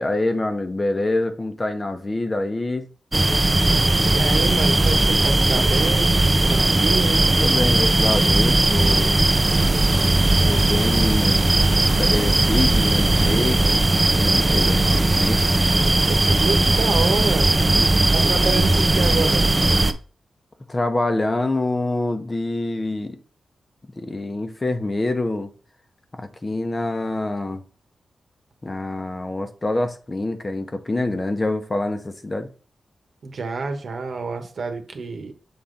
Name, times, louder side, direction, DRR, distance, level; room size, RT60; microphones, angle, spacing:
voice 1, 0.0-2.9 7.4-9.1 10.4-11.4 12.0-15.5 20.7-23.2 24.0-25.5 26.1-27.6 28.6-32.5, left 2 dB, 30° left, 0.9 m, -26 dB
sound 1, 3.1-19.9, right 2 dB, 25° right, 0.6 m, -18 dB
voice 2, 4.1-7.2 16.1-17.5 18.1-19.7 33.2-35.3, right 4 dB, 65° right, 1.1 m, -28 dB
7.1 x 3.8 x 3.9 m
cardioid pair, 75°, 0 cm